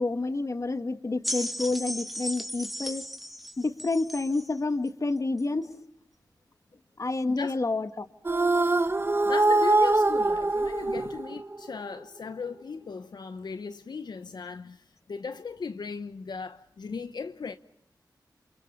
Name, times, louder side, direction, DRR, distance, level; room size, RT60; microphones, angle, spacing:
voice 1, 0.0-3.1 3.6-5.7 7.0-8.1, left 3 dB, 45° left, 1.7 m, -29 dB
sound 1, 1.2-4.5 5.4-5.5, equal, ahead, 2.2 m, -36 dB
voice 2, 7.3-7.6 9.2-17.6, left 5 dB, 70° left, 1.0 m, -37 dB
sound 2, 8.2-11.7, right 2 dB, 30° right, 1.4 m, -23 dB
29.0 x 28.0 x 5.6 m
wide cardioid pair, 70°, 7 cm